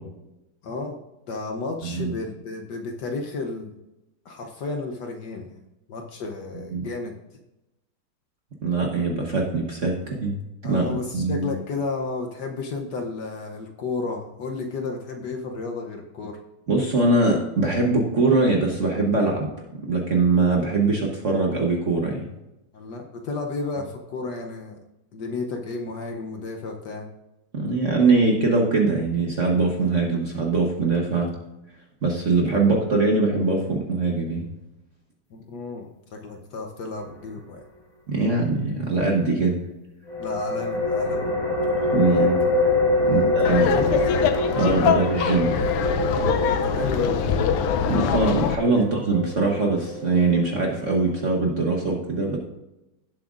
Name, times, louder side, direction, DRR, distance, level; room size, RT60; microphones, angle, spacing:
voice 1, 0.6-1.0 1.3-3.7 4.2-5.6 5.9-7.1 10.6-16.4 22.7-24.8 25.1-27.1 35.3-37.6 40.2-41.3 42.9-44.0 46.4-47.4 48.8-48.9, left 3 dB, 65° left, 3 dB, 1.2 m, -32 dB
voice 2, 1.8-2.1 6.7-6.9 8.6-10.4 10.6-11.5 16.7-19.5 19.9-22.3 27.5-31.3 32.0-34.4 38.1-39.6 41.9-42.4 43.1-43.7 44.6-45.5 47.9-52.4, right 3 dB, 45° right, 0 dB, 1.1 m, -22 dB
sound 1, 40.1-51.4, left 2 dB, 40° left, 2.5 m, -25 dB
Laughter, 43.4-48.5, left 7 dB, 85° left, 1.6 m, -24 dB
16.5 x 7.5 x 2.5 m, 0.96 s
omnidirectional pair, 2.4 m